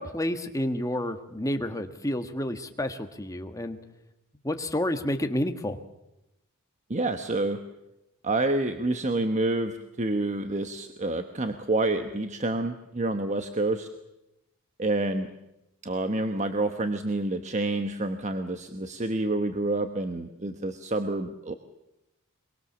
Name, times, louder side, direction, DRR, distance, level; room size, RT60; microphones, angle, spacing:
voice 1, 0.0-3.8 4.4-5.8, left 1 dB, 15° left, 6 dB, 1.5 m, -30 dB
voice 2, 6.9-7.6 8.2-13.9 14.8-15.3 15.8-21.5, right 2 dB, 35° right, 7 dB, 1.1 m, -28 dB
23.5 x 23.0 x 7.1 m, 0.90 s
head